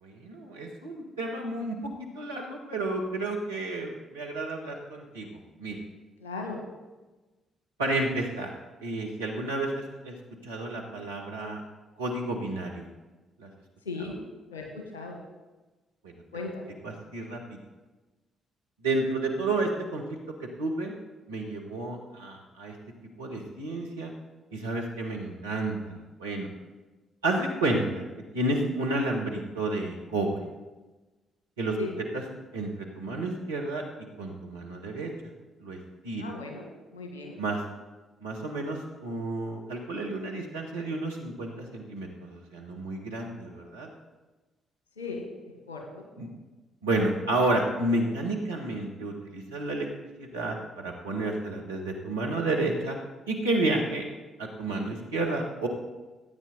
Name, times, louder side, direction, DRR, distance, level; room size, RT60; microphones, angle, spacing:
voice 1, 0.0-5.3 5.6-5.8 7.8-8.5 8.8-10.1 10.4-11.6 12.0-12.9 13.4-13.5 16.0-16.1 16.8-17.6 18.8-20.0 20.6-20.9 21.3-22.7 23.2-24.1 24.5-26.5 27.2-28.0 28.3-30.3 31.6-31.8 32.1-32.2 32.5-33.8 34.2-35.1 35.6-35.8 36.0-36.2 37.4-37.6 38.2-43.9 46.2-46.3 46.8-49.9 50.2-53.0 53.3-54.0 54.4-55.7, right 2 dB, 80° right, -1 dB, 1.5 m, -31 dB
voice 2, 6.2-6.6 13.8-14.2 14.5-15.2 16.3-16.7 31.8-31.9 36.2-37.4 45.0-45.3 45.7-46.0, left 3 dB, 80° left, 2 dB, 1.6 m, -37 dB
15.0 x 9.1 x 4.1 m, 1.2 s
figure-of-eight pair, 40°, 0 cm